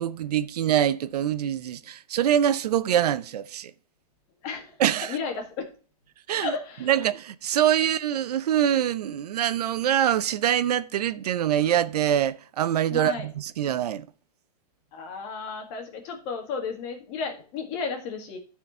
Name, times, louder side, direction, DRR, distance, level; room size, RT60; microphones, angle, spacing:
voice 1, 0.0-3.7 4.8-5.2 6.3-6.5 6.9-14.1, right 10 dB, 75° right, 0.6 m, -24 dB
voice 2, 4.4-4.7 5.0-5.7 6.4-6.9 12.9-13.3 14.9-18.4, left 5 dB, 30° left, 1.8 m, -33 dB
13.5 x 4.7 x 4.2 m
supercardioid pair, 170°, 20 cm